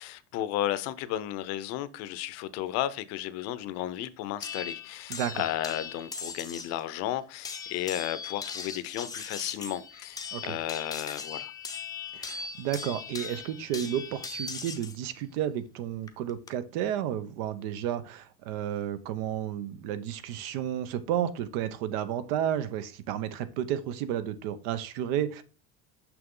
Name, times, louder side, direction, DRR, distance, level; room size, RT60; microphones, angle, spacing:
voice 1, 0.0-11.5, left 13 dB, 60° left, 0.7 m, -33 dB
sound 1, 4.4-6.8 7.4-15.0 16.1-16.5, left 5 dB, 10° left, 0.5 m, -39 dB
voice 2, 5.1-5.5 10.3-10.6 12.1-25.4, right 10 dB, 80° right, 0.8 m, -32 dB
6.1 x 6.0 x 3.8 m
cardioid pair, 150°, 30 cm